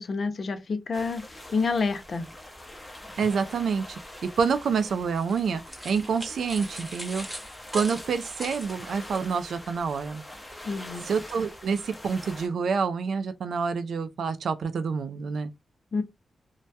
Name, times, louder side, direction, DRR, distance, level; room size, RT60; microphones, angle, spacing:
voice 1, 0.0-2.3 10.6-11.1 15.9-16.0, left 4 dB, 55° left, 0.4 m, -28 dB
sound 1, 0.9-12.5, left 1 dB, 15° left, 0.6 m, -44 dB
voice 2, 3.2-7.3 7.7-10.2 11.1-15.5, right 5 dB, 80° right, 0.3 m, -28 dB
sound 2, 5.2-9.2, equal, 5° right, 1.1 m, -40 dB
2.2 x 2.1 x 2.6 m
cardioid pair, 85°, 0 cm